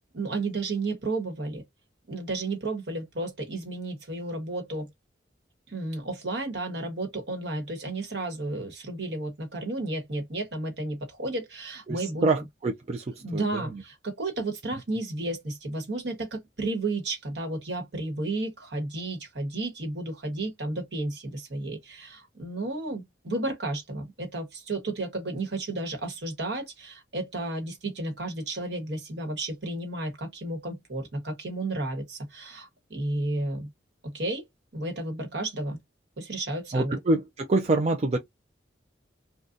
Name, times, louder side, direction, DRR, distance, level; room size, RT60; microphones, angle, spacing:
voice 1, 0.1-1.6 2.1-4.9 5.7-12.3 13.2-33.7 34.0-34.5 34.7-35.8 36.2-37.0, right 2 dB, 65° right, 1.2 m, -32 dB
voice 2, 11.9-13.8 36.7-38.2, right 2 dB, 35° right, 0.4 m, -26 dB
3.7 x 2.2 x 2.5 m
head